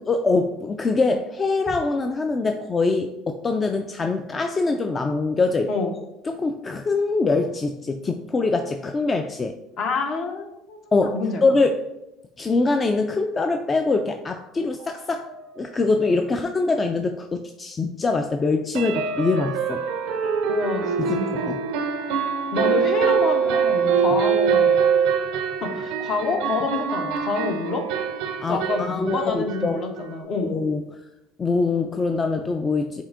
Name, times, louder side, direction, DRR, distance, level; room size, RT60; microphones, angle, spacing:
voice 1, 0.1-5.7 6.4-9.6 10.9-11.7 12.4-15.3 15.6-19.8 21.0-21.6 28.4-29.8 30.4-30.8 31.4-33.0, left 3 dB, 30° left, 6 dB, 0.3 m, -23 dB
voice 2, 9.8-11.4 20.5-21.7 22.5-24.9 25.6-27.9 28.5-30.6, left 3 dB, 55° left, 4 dB, 0.8 m, -27 dB
sound 1, 14.8-14.9 15.3-15.4 15.7-15.8 18.8-30.2, right 6 dB, 70° right, 0.4 m, -24 dB
6.8 x 2.7 x 2.5 m, 0.90 s
hypercardioid pair, 80°, 0 cm